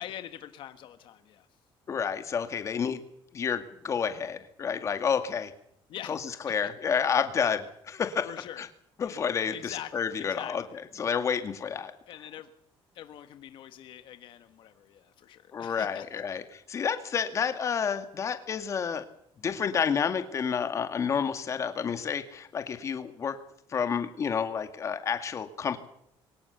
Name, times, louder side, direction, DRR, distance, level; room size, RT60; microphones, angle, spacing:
voice 1, 0.0-1.5 5.9-6.3 8.2-8.7 9.0-10.8 12.1-12.5 12.9-16.2, left 11 dB, 60° left, 9 dB, 1.3 m, -44 dB
voice 2, 1.9-3.0 3.3-5.5 6.1-8.3 8.6-8.7 9.0-10.6 11.0-11.9 15.5-19.1 19.4-23.4 23.7-25.8, left 7 dB, 30° left, 8 dB, 2.2 m, -30 dB
23.5 x 20.0 x 7.1 m, 0.72 s
cardioid pair, 175°, 10 cm